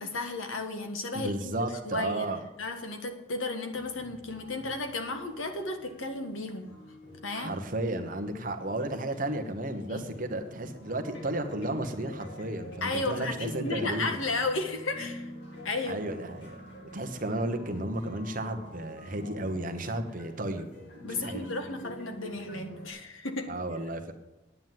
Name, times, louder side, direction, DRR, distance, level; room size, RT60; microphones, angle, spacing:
voice 1, 0.0-6.7 7.2-7.5 9.8-10.0 12.8-15.3 15.6-16.0 21.0-23.5, left 3 dB, 80° left, 5 dB, 1.6 m, -34 dB
voice 2, 1.1-2.4 7.3-14.2 15.8-20.7 21.2-21.5 23.5-24.1, right 1 dB, 40° right, 6 dB, 1.1 m, -33 dB
sound 1, 3.7-22.9, equal, 60° left, 2.9 m, -47 dB
9.3 x 9.3 x 7.5 m, 0.98 s
head